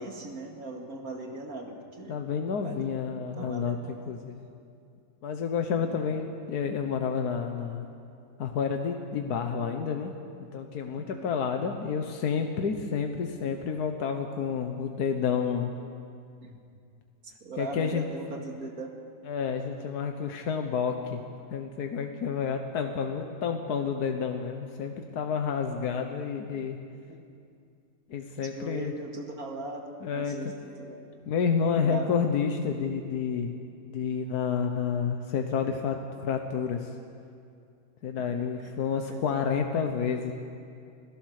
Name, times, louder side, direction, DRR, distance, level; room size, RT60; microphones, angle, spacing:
voice 1, 0.0-2.2 2.6-2.8 3.1-4.1 5.8-6.2 11.0-11.3 16.4-16.6 17.2-18.9 27.1-27.2 28.4-31.1 31.8-32.1 38.4-38.7 39.1-39.4, right 2 dB, 65° right, 2 dB, 2.6 m, -40 dB
voice 2, 2.1-4.3 5.2-7.8 8.4-10.1 10.5-15.7 17.6-18.0 19.3-21.2 21.5-26.8 28.1-28.9 30.0-30.4 31.3-33.5 33.9-36.9 38.0-40.3, left 6 dB, 80° left, 5 dB, 1.6 m, -29 dB
26.5 x 17.0 x 6.6 m, 2.4 s
omnidirectional pair, 1.6 m